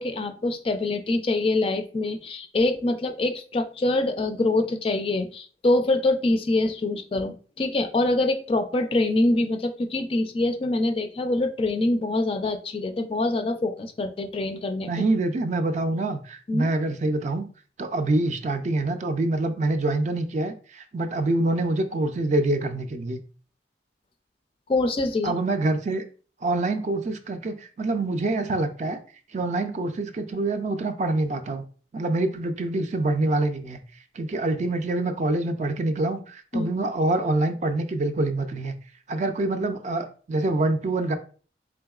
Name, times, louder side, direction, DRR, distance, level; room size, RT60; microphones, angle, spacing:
voice 1, 0.0-14.9 16.5-16.7 24.7-25.3 36.5-36.7, left 2 dB, 30° left, 7 dB, 0.3 m, -25 dB
voice 2, 14.9-17.4 17.8-23.2 25.2-26.0 26.4-29.0 29.3-31.6 31.9-33.8 34.2-38.7 39.1-41.1, right 2 dB, 40° right, 8 dB, 0.4 m, -25 dB
3.8 x 3.5 x 2.3 m, 0.40 s
head